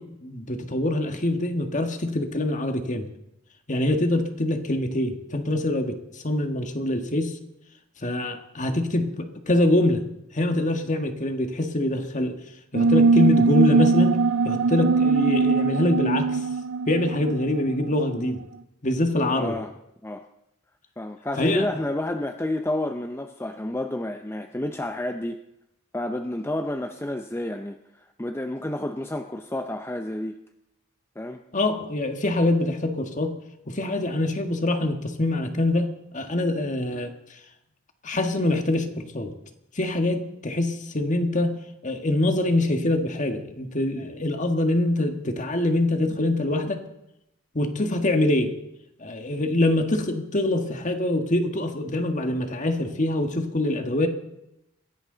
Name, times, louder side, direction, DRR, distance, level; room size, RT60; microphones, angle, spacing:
voice 1, 0.0-3.1 3.7-7.4 8.0-10.0 10.3-12.4 12.7-16.4 16.9-18.4 18.8-19.6 21.4-21.7 31.5-33.3 33.7-37.1 38.0-39.3 39.8-41.6 41.8-46.8 47.5-48.5 49.0-54.1, left 1 dB, 35° left, 6 dB, 1.7 m, -24 dB
sound 1, 12.7-17.9, right 4 dB, 75° right, 0.5 m, -21 dB
voice 2, 19.3-19.7 20.0-20.3 21.0-25.4 25.9-30.4 31.2-31.4, left 1 dB, 10° left, 6 dB, 0.6 m, -30 dB
22.0 x 16.5 x 3.9 m, 0.85 s
head